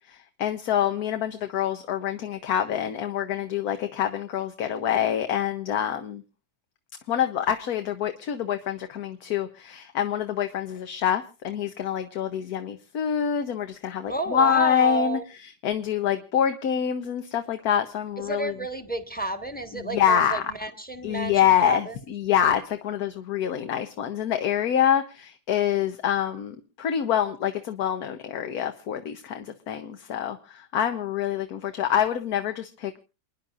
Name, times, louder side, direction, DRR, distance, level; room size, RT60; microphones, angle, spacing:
voice 1, 0.1-6.2 7.1-15.2 15.6-18.5 19.9-20.4 21.0-33.0, left 9 dB, 65° left, 7 dB, 1.3 m, -26 dB
voice 2, 14.0-15.2 18.2-22.0, right 3 dB, 5° left, 8 dB, 1.2 m, -31 dB
29.0 x 10.5 x 2.5 m, 0.32 s
omnidirectional pair, 1.8 m